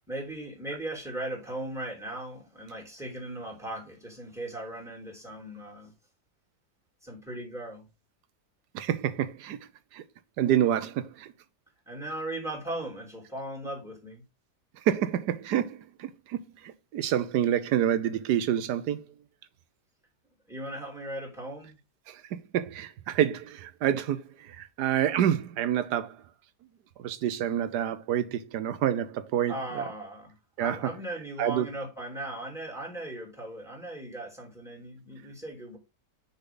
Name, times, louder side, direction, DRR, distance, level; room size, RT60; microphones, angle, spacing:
voice 1, 0.1-5.9 7.0-7.9 11.9-14.2 20.5-21.8 29.5-35.8, right 1 dB, ahead, 3.2 m, -38 dB
voice 2, 8.7-9.6 9.9-10.0 10.4-11.3 14.8-19.1 22.1-26.2 27.0-29.8 30.6-30.9 31.4-31.7, right 10 dB, 75° right, 1.3 m, -28 dB
6.6 x 5.8 x 3.9 m
omnidirectional pair, 1.8 m